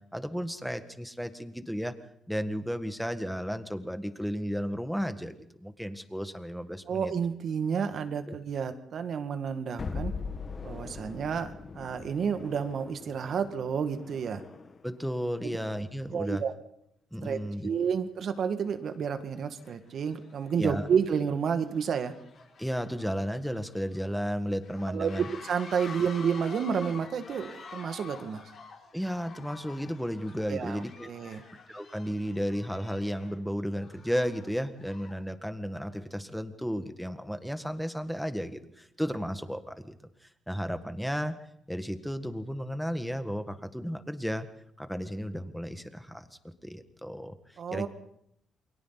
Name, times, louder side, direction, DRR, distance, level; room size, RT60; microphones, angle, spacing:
voice 1, 0.1-1.9 2.3-7.1 8.3-8.4 14.8-16.4 17.1-17.7 20.6-20.9 22.6-25.3 28.9-31.4 31.7-40.0 40.2-41.3 41.7-44.5 44.8-47.9, equal, ahead, 9 dB, 1.8 m, -34 dB
voice 2, 6.9-10.1 10.6-11.5 11.7-14.4 15.4-15.6 16.1-16.5 17.2-22.1 24.9-28.4 30.5-31.4 47.6-47.9, right 7 dB, 60° right, 8 dB, 1.9 m, -30 dB
sound 1, 9.8-14.9, left 4 dB, 40° left, 1.8 m, -40 dB
Party then screams, 17.9-18.0 18.7-19.0 19.3-35.3, left 5 dB, 60° left, 5.8 m, -49 dB
28.5 x 22.5 x 4.1 m, 0.73 s
cardioid pair, 90°, 0 cm